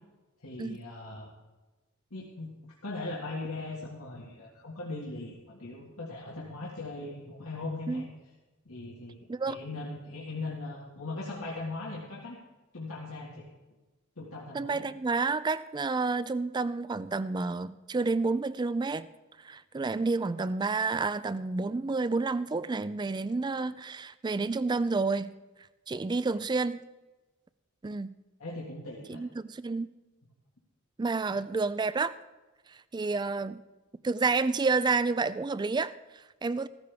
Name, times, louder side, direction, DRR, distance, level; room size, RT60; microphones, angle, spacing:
voice 1, 0.4-1.3 2.1-2.5 2.8-8.0 8.7-9.2 9.5-12.4 12.7-13.5 14.2-14.9 28.4-29.2, left 2 dB, 75° left, -4 dB, 1.9 m, -39 dB
voice 2, 14.5-19.1 19.4-25.3 25.9-26.8 27.8-28.1 29.1-29.9 31.0-32.1 32.7-33.6 34.0-36.7, right 3 dB, 20° right, 16 dB, 0.3 m, -30 dB
15.0 x 14.0 x 3.5 m, 1.2 s
head